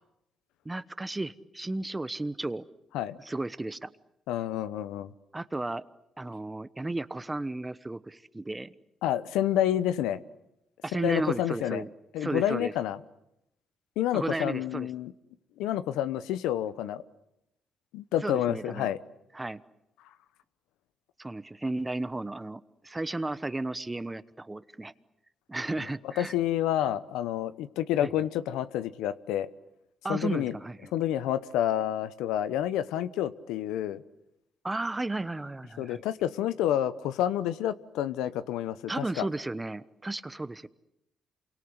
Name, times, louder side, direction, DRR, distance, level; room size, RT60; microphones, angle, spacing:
voice 1, 0.6-2.6 3.2-3.9 5.3-5.8 6.2-8.7 10.8-11.9 12.2-12.7 14.1-14.9 18.2-18.9 19.3-19.6 21.2-24.9 25.5-26.3 28.0-28.1 30.0-30.9 34.6-36.0 38.9-40.7, right 2 dB, 15° right, 15 dB, 1.1 m, -34 dB
voice 2, 4.3-5.1 9.0-10.2 10.9-11.8 12.1-13.0 14.0-15.1 15.6-17.0 17.9-19.0 26.2-29.5 30.1-30.5 30.9-34.0 35.8-39.3, left 11 dB, 90° left, 14 dB, 0.9 m, -29 dB
28.0 x 24.0 x 8.1 m, 0.84 s
supercardioid pair, 70°, 0 cm